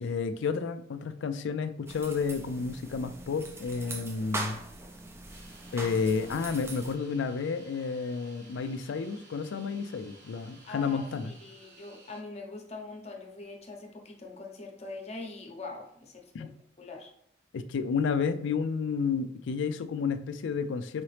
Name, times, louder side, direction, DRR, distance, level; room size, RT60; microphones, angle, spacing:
voice 1, 0.0-4.6 5.7-11.3 16.3-16.5 17.5-21.0, left 5 dB, 65° left, 11 dB, 0.4 m, -31 dB
sound 1, 1.9-6.9, right 2 dB, 15° right, 0.5 m, -41 dB
sound 2, 5.3-12.2, right 2 dB, 65° right, 1.5 m, -55 dB
voice 2, 10.7-16.5 16.8-17.1, left 3 dB, 35° left, 2 dB, 0.8 m, -43 dB
4.7 x 2.9 x 3.2 m, 0.70 s
head